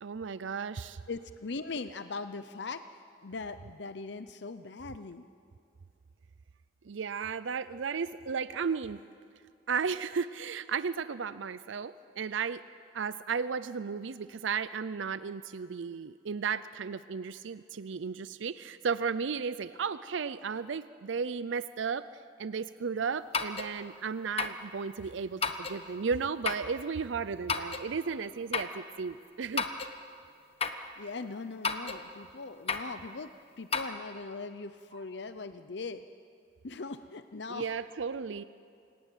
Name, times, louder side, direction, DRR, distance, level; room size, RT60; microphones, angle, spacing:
voice 1, 0.0-1.0 6.9-9.0 9.7-12.6 12.9-22.1 22.4-29.7 31.9-32.0 37.5-38.4, right 5 dB, 80° right, 14 dB, 0.5 m, -34 dB
voice 2, 1.1-2.8 3.2-5.3 30.7-33.3 33.6-36.0 36.6-37.7, left 4 dB, 65° left, 11 dB, 0.7 m, -40 dB
sound 1, 23.3-23.7 24.4-24.6 25.4-25.8 26.4-26.7 27.5-27.9 28.5-28.8 29.6-29.9 30.6-30.8 31.6-32.0 32.7-32.9 33.7-33.9, left 5 dB, 30° left, 1.2 m, -32 dB
29.0 x 17.5 x 9.1 m, 2.4 s
head